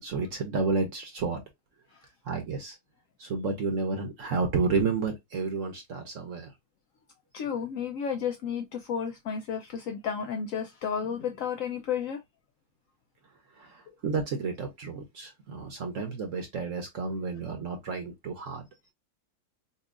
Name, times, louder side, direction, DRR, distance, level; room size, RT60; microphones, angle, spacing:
voice 1, 0.0-1.4 2.2-2.8 3.2-6.5 13.5-18.7, right 4 dB, 55° right, 1.0 m, -31 dB
voice 2, 7.3-12.2, left 7 dB, 75° left, 0.7 m, -32 dB
5.4 x 2.4 x 2.4 m
omnidirectional pair, 2.0 m